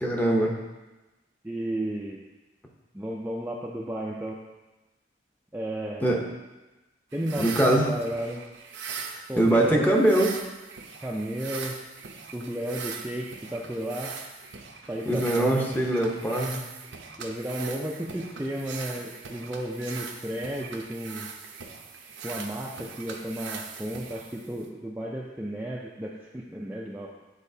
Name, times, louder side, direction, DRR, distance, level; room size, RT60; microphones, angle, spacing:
voice 1, 0.0-0.5 6.0-6.2 7.4-7.9 9.1-10.3 15.1-16.6, right 1 dB, 10° left, -1 dB, 0.8 m, -22 dB
voice 2, 1.4-2.2 2.9-4.4 5.5-6.1 7.1-8.4 9.3-9.9 11.0-11.8 12.3-14.1 14.9-15.7 17.2-21.3 22.2-27.1, right 1 dB, 10° right, -3 dB, 0.4 m, -33 dB
sound 1, 7.1-24.7, right 5 dB, 75° right, 0.7 m, -41 dB
9.9 x 4.1 x 2.7 m, 1.1 s
head